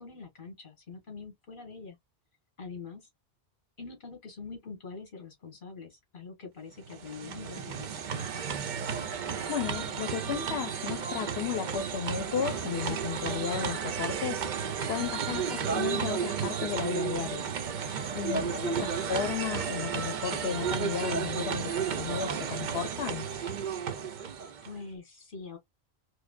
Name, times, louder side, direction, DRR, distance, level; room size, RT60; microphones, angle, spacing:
voice 1, 0.0-2.0 2.6-3.1 3.8-8.4 15.3-15.7 18.3-18.9 24.6-25.6, left 4 dB, 55° left, 1.7 m, -44 dB
sound 1, 6.8-24.8, right 7 dB, 55° right, 0.6 m, -33 dB
voice 2, 9.5-17.5 17.8-23.3, left 8 dB, 80° left, 0.9 m, -34 dB
4.7 x 2.1 x 2.3 m
omnidirectional pair, 1.1 m